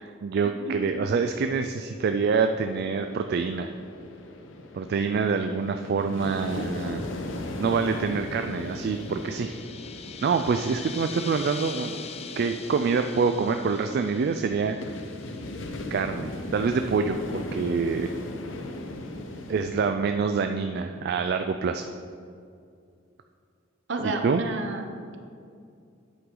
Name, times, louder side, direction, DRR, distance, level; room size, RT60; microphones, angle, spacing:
voice 1, 0.2-3.7 4.7-7.1 7.6-9.5 10.2-11.9 12.4-14.8 15.9-18.1 19.5-21.9 24.2-24.4, right 5 dB, 55° right, 7 dB, 0.3 m, -26 dB
sound 1, 2.6-20.0, left 1 dB, 80° left, 0.8 m, -38 dB
voice 2, 5.7-6.5 23.9-24.9, right 2 dB, 70° right, 5 dB, 0.9 m, -32 dB
sound 2, 7.5-15.8, left 6 dB, 35° left, 0.5 m, -43 dB
8.8 x 8.0 x 3.8 m, 2.4 s
head